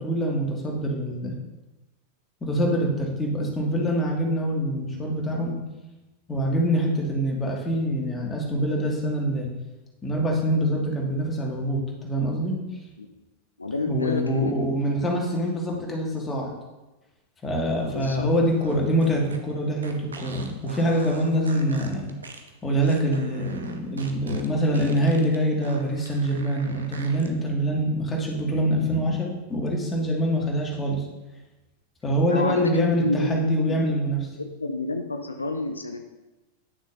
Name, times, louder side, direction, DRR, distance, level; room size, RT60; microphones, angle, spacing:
voice 1, 0.0-1.3 2.4-5.6 6.3-9.5 10.0-12.6 13.9-16.5 17.4-22.1 22.6-31.0 32.0-34.2, equal, 15° left, -1 dB, 1.7 m, -25 dB
voice 2, 13.6-14.5 17.9-18.3 21.3-21.4 32.3-33.7 34.4-36.1, left 2 dB, 80° left, 6 dB, 0.5 m, -29 dB
sound 1, 17.7-27.3, right 4 dB, 70° right, 0.7 m, -42 dB
10.0 x 6.3 x 2.5 m, 1.1 s
figure-of-eight pair, 90°, 0 cm